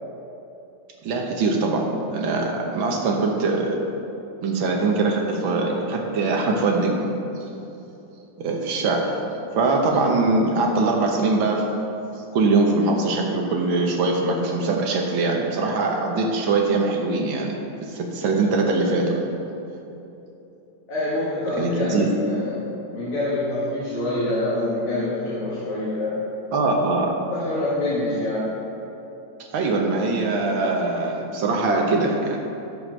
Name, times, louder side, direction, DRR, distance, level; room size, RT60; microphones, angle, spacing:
voice 1, 1.0-3.8 4.4-7.1 8.4-9.1 9.5-11.7 12.3-17.5 17.8-19.2 21.6-22.1 26.5-27.2 29.5-32.4, right 3 dB, 60° right, 1 dB, 1.4 m, -22 dB
voice 2, 20.9-26.2 27.3-28.6, left 1 dB, 70° left, -9 dB, 3.1 m, -26 dB
13.0 x 5.2 x 6.4 m, 2.9 s
omnidirectional pair, 3.4 m